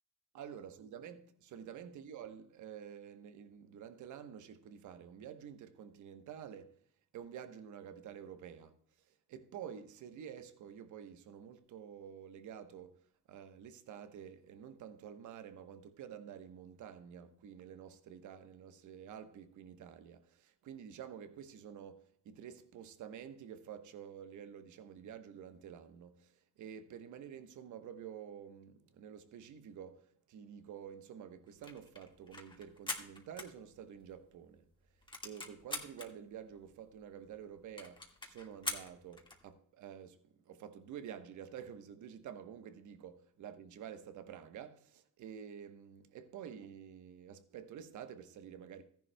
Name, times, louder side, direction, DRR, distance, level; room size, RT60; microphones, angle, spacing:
voice 1, 0.3-6.8 7.1-8.8 9.1-13.0 13.3-34.6 35.2-40.2 40.4-48.8, right 8 dB, 75° right, 1.1 m, -49 dB
sound 1, 31.5-34.1 34.5-34.6 34.8-36.1 36.7-36.8 37.0-37.1 37.3-37.4 37.8-39.5, left 2 dB, 15° left, 1.7 m, -43 dB
14.5 x 10.5 x 2.2 m
cardioid pair, 90°, 30 cm